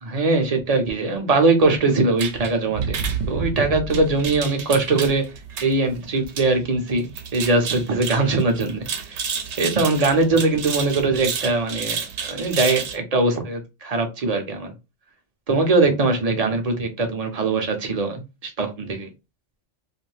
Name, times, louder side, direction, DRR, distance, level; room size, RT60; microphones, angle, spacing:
voice 1, 0.0-3.0 3.3-5.2 5.6-9.2 9.6-14.7 15.5-19.1, right 3 dB, 40° right, 0.6 m, -21 dB
sound 1, 2.2-13.0, right 6 dB, 65° right, 0.9 m, -30 dB
2.6 x 2.5 x 3.2 m
omnidirectional pair, 1.3 m